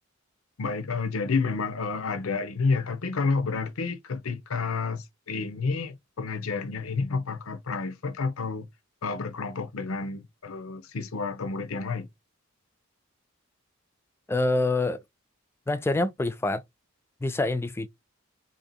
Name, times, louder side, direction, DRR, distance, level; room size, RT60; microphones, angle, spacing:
voice 1, 0.6-8.7 9.0-12.1, left 4 dB, 90° left, 0.6 m, -30 dB
voice 2, 14.3-15.0 15.7-16.6 17.2-17.9, left 2 dB, 10° left, 0.3 m, -26 dB
2.9 x 2.7 x 4.0 m
head